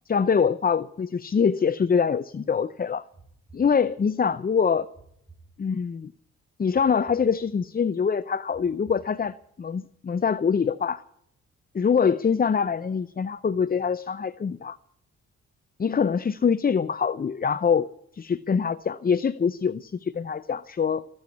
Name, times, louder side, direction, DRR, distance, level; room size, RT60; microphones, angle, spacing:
voice 1, 0.1-3.0 3.5-4.9 5.6-6.1 6.6-11.0 11.7-14.8 15.8-17.9 18.1-21.1, left 6 dB, 30° left, 15 dB, 0.6 m, -24 dB
sound 1, 3.1-4.3 4.9-6.1 6.7-7.9 8.5-9.7, right 3 dB, 5° right, 3.2 m, -55 dB
21.0 x 7.9 x 8.4 m, 0.74 s
supercardioid pair, 60°, 31 cm